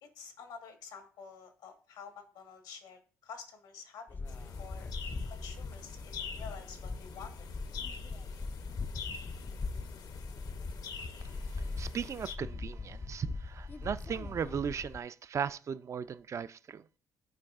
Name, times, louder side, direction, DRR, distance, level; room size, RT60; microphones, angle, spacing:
voice 1, 0.0-4.1 4.6-4.9 5.3-7.5, left 6 dB, 85° left, 1.2 m, -49 dB
sound 1, 4.1-15.0, left 3 dB, 25° left, 0.4 m, -41 dB
sound 2, 4.3-12.4, left 6 dB, 65° left, 0.7 m, -46 dB
voice 2, 11.6-16.8, right 7 dB, 45° right, 0.4 m, -37 dB
10.0 x 4.6 x 2.4 m
supercardioid pair, 75°, 7 cm